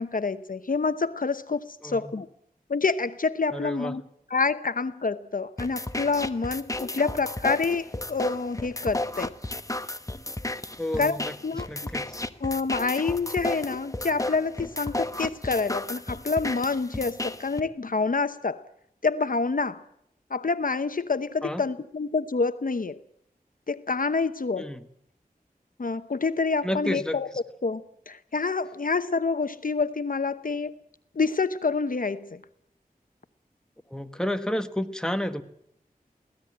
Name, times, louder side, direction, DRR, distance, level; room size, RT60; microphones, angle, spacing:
voice 1, 0.0-2.3 2.7-4.0 4.3-9.3 11.0-11.7 12.4-18.6 19.0-19.8 20.3-23.0 23.7-24.8 25.8-27.3 27.6-30.8 31.1-32.4, left 4 dB, 65° left, 0.9 m, -27 dB
voice 2, 1.8-2.1 3.5-4.0 10.8-12.1 21.4-21.6 24.6-24.8 26.6-27.2 33.9-35.4, left 1 dB, 5° left, 1.4 m, -31 dB
sound 1, 5.6-17.6, left 2 dB, 20° left, 1.1 m, -33 dB
24.0 x 17.0 x 8.6 m
wide cardioid pair, 60°, 15 cm